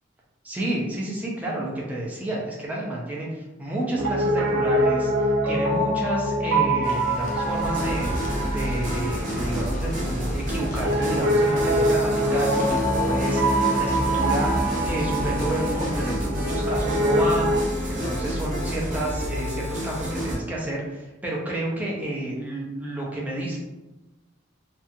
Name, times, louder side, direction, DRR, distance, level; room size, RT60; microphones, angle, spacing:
voice 1, 0.4-8.1 8.5-23.6, right 1 dB, 10° right, -4 dB, 0.5 m, -30 dB
Piano, 3.9-17.7, right 1 dB, 65° right, 0.4 m, -25 dB
sound 1, 6.8-16.1, left 1 dB, 40° left, 0.5 m, -38 dB
sound 2, 7.6-20.3, equal, 40° right, 0.9 m, -29 dB
2.6 x 2.4 x 2.6 m, 1.1 s
head